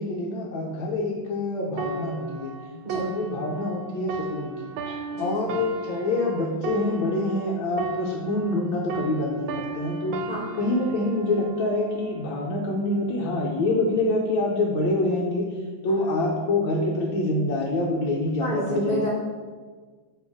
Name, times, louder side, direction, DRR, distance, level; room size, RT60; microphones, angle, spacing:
voice 1, 0.0-2.6 2.9-10.2 10.5-15.5 15.8-19.0, left 2 dB, 75° left, -3 dB, 1.5 m, -26 dB
sound 1, 1.8-8.6 8.9-12.5 13.1-13.3, right 4 dB, 80° right, 1.4 m, -35 dB
voice 2, 18.4-19.1, right 1 dB, 30° right, -8 dB, 1.1 m, -28 dB
7.2 x 3.5 x 4.9 m, 1.5 s
omnidirectional pair, 2.2 m